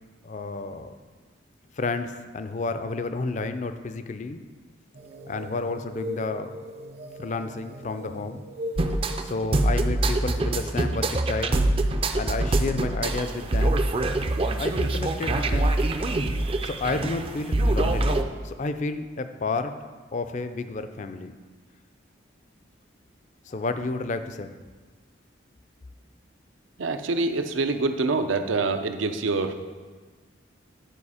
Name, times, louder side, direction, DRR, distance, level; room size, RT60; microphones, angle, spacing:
voice 1, 0.2-0.9 1.8-4.4 5.3-6.5 7.2-8.4 9.2-11.6 12.1-13.9 14.6-15.8 16.6-19.7 20.1-21.3 23.5-24.5, left 3 dB, 40° left, 9 dB, 0.4 m, -31 dB
sound 1, 4.9-11.4, equal, 55° right, 0.8 m, -40 dB
sound 2, 8.8-18.2, right 2 dB, 30° right, 0.4 m, -24 dB
voice 2, 26.8-29.5, right 3 dB, 85° right, 8 dB, 0.6 m, -25 dB
9.7 x 5.0 x 4.9 m, 1.4 s
head